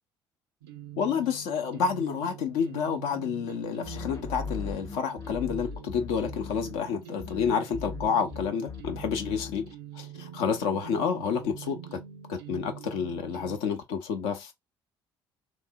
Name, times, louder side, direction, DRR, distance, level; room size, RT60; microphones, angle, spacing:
sound 1, 0.6-13.6, right 10 dB, 80° right, 0.5 m, -44 dB
voice 1, 1.0-9.6 10.0-12.0 12.3-14.5, left 6 dB, 70° left, 0.8 m, -29 dB
sound 2, 3.8-6.9 7.2-9.8, left 6 dB, 25° left, 0.4 m, -39 dB
3.1 x 2.6 x 3.5 m
hypercardioid pair, 55°, 13 cm